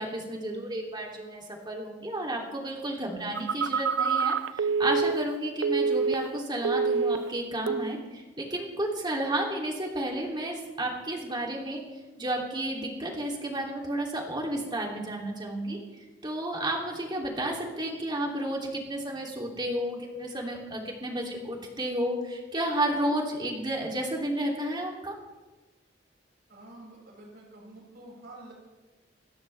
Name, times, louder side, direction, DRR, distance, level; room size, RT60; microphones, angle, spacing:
voice 1, 0.0-11.8 12.2-15.8 16.2-25.1, right 1 dB, 25° right, 0 dB, 3.0 m, -32 dB
Telephone, 3.3-6.4 6.6-7.3 7.7-8.0, right 5 dB, 90° right, 0.5 m, -27 dB
voice 2, 26.5-28.5, right 1 dB, 60° right, -3 dB, 6.4 m, -48 dB
27.5 x 13.5 x 3.4 m, 1.2 s
head